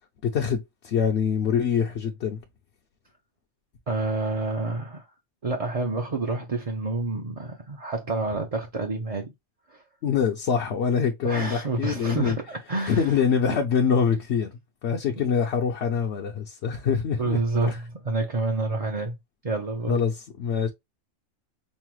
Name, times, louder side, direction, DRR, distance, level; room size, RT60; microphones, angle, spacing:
voice 1, 0.2-2.4 10.0-12.4 12.9-14.5 14.8-17.4 17.7-17.8 19.9-20.7, left 6 dB, 60° left, 0.8 m, -24 dB
voice 2, 3.9-5.0 5.4-9.3 9.7-9.8 11.2-13.2 13.4-13.6 15.1-15.2 17.2-19.2 19.4-20.0, right 2 dB, 40° right, 0.5 m, -28 dB
5.5 x 2.0 x 2.9 m
omnidirectional pair, 1.5 m